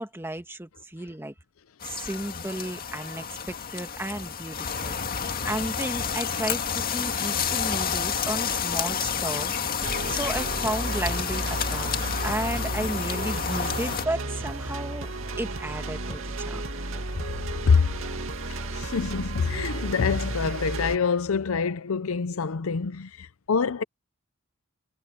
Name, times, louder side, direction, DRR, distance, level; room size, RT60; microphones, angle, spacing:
voice 1, 0.0-1.3 1.8-9.8 10.1-15.1 15.4-16.6, right 1 dB, 10° right, 1.9 m, -33 dB
sound 1, 1.8-14.0, left 7 dB, 45° left, 1.9 m, -30 dB
sound 2, 7.6-20.3, equal, 10° left, 7.4 m, -49 dB
sound 3, 9.8-21.0, right 2 dB, 75° right, 2.4 m, -33 dB
voice 2, 18.7-23.8, left 5 dB, 80° left, 0.6 m, -25 dB
head